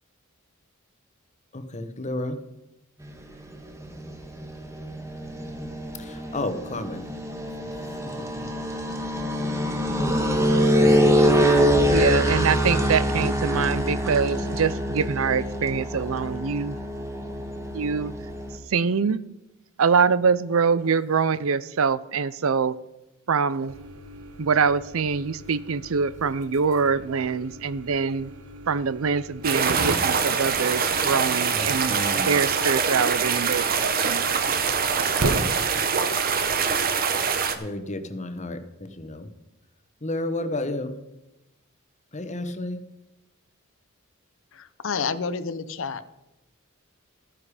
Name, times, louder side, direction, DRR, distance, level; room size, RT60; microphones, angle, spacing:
voice 1, 1.5-2.4 6.0-7.0 7.7-8.5 10.8-11.2 31.5-32.4 35.2-35.5 37.5-39.3 40.0-40.9 42.1-42.8, left 2 dB, 35° left, 10 dB, 1.1 m, -32 dB
sound 1, 3.0-18.6, equal, 15° right, 1.4 m, -25 dB
voice 2, 11.9-16.8 17.7-18.1 18.7-19.2 19.8-22.7 23.3-23.7 24.4-28.3 28.7-32.0 32.3-34.2, right 5 dB, 70° right, 17 dB, 0.5 m, -24 dB
sound 2, 23.7-36.9, right 2 dB, 90° right, 1.2 m, -37 dB
sound 3, 29.4-37.5, right 6 dB, 45° right, 1.0 m, -24 dB
voice 3, 44.5-46.1, left 5 dB, 65° left, 14 dB, 0.7 m, -30 dB
13.0 x 9.9 x 5.0 m, 0.93 s
head